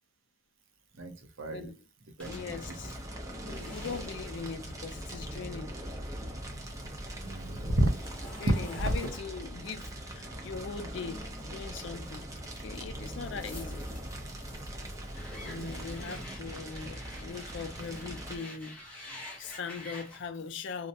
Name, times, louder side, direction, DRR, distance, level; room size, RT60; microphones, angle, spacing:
voice 1, 1.0-1.7 2.2-2.3 3.5-3.9 7.2-7.9 8.8-9.1 15.6-15.7 16.1-16.2, right 1 dB, 90° right, 0.7 m, -31 dB
voice 2, 1.5-1.8 2.2-3.0 3.4-5.7 8.4-12.2 12.6-13.9 15.4-20.9, left 5 dB, 65° left, 0.4 m, -40 dB
sound 1, 2.2-6.5 6.8-11.7 12.3-20.3, left 1 dB, 5° left, 0.7 m, -49 dB
Fire, 2.2-18.4, right 1 dB, 15° right, 0.4 m, -41 dB
2.3 x 2.1 x 2.6 m
head